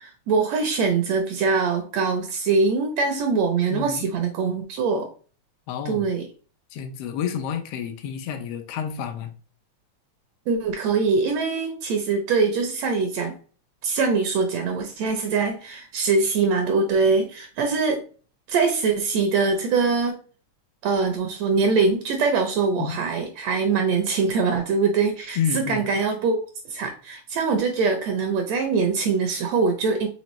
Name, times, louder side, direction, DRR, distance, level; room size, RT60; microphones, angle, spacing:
voice 1, 0.0-5.1 5.8-6.2 10.5-13.3 13.8-18.0 18.5-20.1 20.8-30.1, right 4 dB, 75° right, 5 dB, 1.6 m, -23 dB
voice 2, 3.7-4.0 5.7-6.1 6.7-9.3 22.8-23.0 25.4-25.9, left 8 dB, 80° left, 6 dB, 1.3 m, -29 dB
5.2 x 3.3 x 3.0 m, 0.40 s
omnidirectional pair, 3.4 m